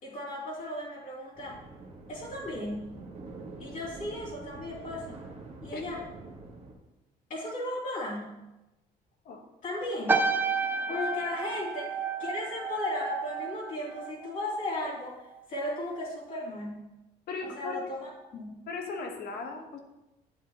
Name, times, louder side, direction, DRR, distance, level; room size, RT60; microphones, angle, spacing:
voice 1, 0.0-1.6 2.1-2.9 3.6-5.2 5.6-6.0 7.3-8.3 9.6-10.2 10.9-16.8 17.4-18.5, left 1 dB, 50° left, -6 dB, 3.0 m, -36 dB
sound 1, 1.3-6.7, right 3 dB, 35° right, 1.5 m, -46 dB
sound 2, 10.1-14.7 15.0-15.4, right 4 dB, 10° right, 0.6 m, -31 dB
voice 2, 17.3-17.9 18.7-19.8, left 4 dB, 65° left, 4 dB, 1.2 m, -37 dB
9.1 x 7.2 x 2.9 m, 0.98 s
cardioid pair, 110°, 17 cm